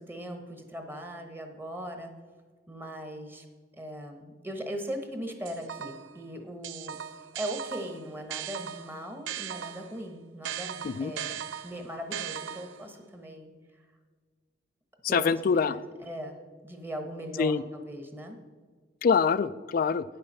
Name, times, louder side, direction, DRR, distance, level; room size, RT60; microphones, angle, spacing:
voice 1, 0.0-2.1 2.7-3.4 3.7-7.0 7.3-13.5 15.1-16.4 16.6-18.4, equal, 10° right, 5 dB, 1.1 m, -39 dB
sound 1, 5.5-6.2 6.6-10.0 10.4-12.9, right 9 dB, 75° right, 0.4 m, -38 dB
voice 2, 15.0-15.8 17.4-17.6 19.0-20.0, left 5 dB, 50° left, 16 dB, 0.3 m, -25 dB
9.5 x 6.9 x 5.5 m, 1.5 s
head